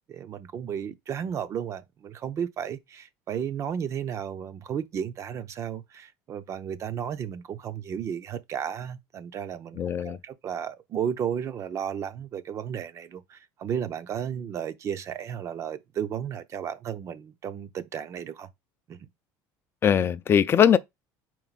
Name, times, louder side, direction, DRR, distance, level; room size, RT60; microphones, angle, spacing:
voice 1, 0.1-18.5 18.9-19.1, right 8 dB, 35° right, 0.6 m, -33 dB
voice 2, 9.8-10.2 19.8-20.8, left 8 dB, 30° left, 0.5 m, -20 dB
5.2 x 4.6 x 4.0 m
cardioid pair, 150°, 9 cm